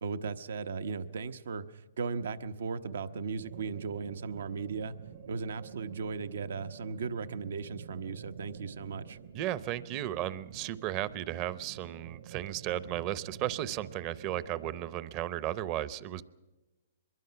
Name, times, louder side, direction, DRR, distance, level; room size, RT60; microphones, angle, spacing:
voice 1, 0.0-5.0 5.3-9.2, right 5 dB, 80° right, 12 dB, 1.0 m, -37 dB
sound 1, 3.4-15.0, right 8 dB, 65° right, 3.9 m, -49 dB
voice 2, 9.3-16.2, right 13 dB, 30° right, 17 dB, 0.7 m, -35 dB
24.0 x 22.0 x 5.8 m, 1.1 s
hypercardioid pair, 155°, 0 cm